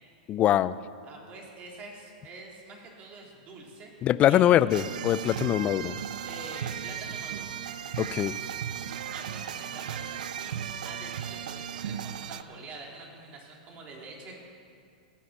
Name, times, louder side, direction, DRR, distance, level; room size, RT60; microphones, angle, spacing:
voice 1, 0.3-0.8 4.0-6.0 8.0-8.4, left 12 dB, 30° left, 16 dB, 0.5 m, -23 dB
voice 2, 1.0-4.4 6.2-7.5 9.1-10.6 10.8-14.4, right 3 dB, 35° right, -1 dB, 3.9 m, -46 dB
sound 1, 4.7-12.4, right 9 dB, 75° right, 0.7 m, -36 dB
16.5 x 9.9 x 8.4 m, 2.4 s
hypercardioid pair, 115°, 4 cm